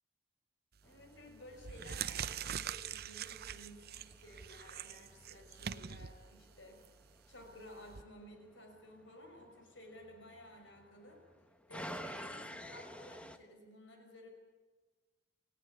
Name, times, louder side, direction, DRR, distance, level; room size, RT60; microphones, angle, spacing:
voice 1, 0.8-6.9 7.3-11.2 11.7-14.3, left 1 dB, 70° left, 4 dB, 5.7 m, -55 dB
sound 1, 0.8-13.4, equal, 5° left, 1.1 m, -53 dB
sound 2, 0.8-1.1 1.5-8.0, right 8 dB, 55° right, 0.6 m, -44 dB
28.5 x 16.0 x 9.4 m, 1.3 s
head